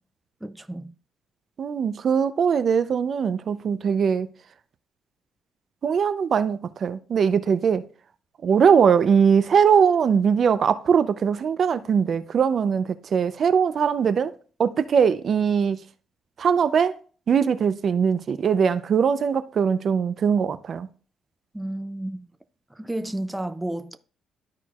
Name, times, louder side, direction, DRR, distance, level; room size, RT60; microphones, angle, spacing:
voice 1, 0.4-0.9 21.5-22.3 22.7-24.0, right 1 dB, 10° right, 0.5 m, -32 dB
voice 2, 1.6-4.3 5.8-7.9 8.4-14.3 14.6-15.8 16.4-17.0 17.3-20.9, right 7 dB, 55° right, 0.6 m, -21 dB
13.0 x 4.5 x 2.4 m
cardioid pair, 90°, 0 cm